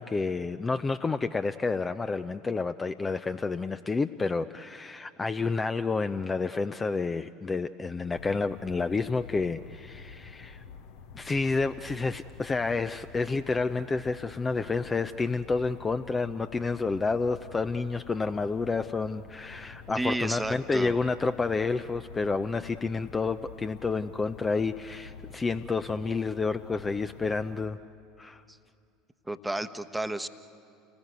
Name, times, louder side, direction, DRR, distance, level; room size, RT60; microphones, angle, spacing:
voice 1, 0.0-10.6 11.1-27.8 28.2-28.4, left 4 dB, 20° left, 11 dB, 0.6 m, -29 dB
sound 1, 8.1-27.7, left 6 dB, 60° left, 1.1 m, -48 dB
voice 2, 19.9-21.0 28.5-28.6 29.3-30.3, right 1 dB, 5° right, 10 dB, 1.0 m, -31 dB
30.0 x 19.5 x 8.1 m, 2.5 s
figure-of-eight pair, 70°, 0 cm